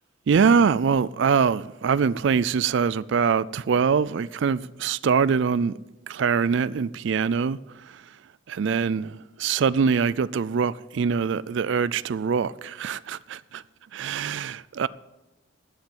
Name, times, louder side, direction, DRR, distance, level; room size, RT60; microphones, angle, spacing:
voice 1, 0.3-5.7 6.1-7.6 8.5-13.6 13.9-14.9, right 6 dB, 55° right, 0.3 m, -23 dB
12.5 x 7.4 x 7.9 m
head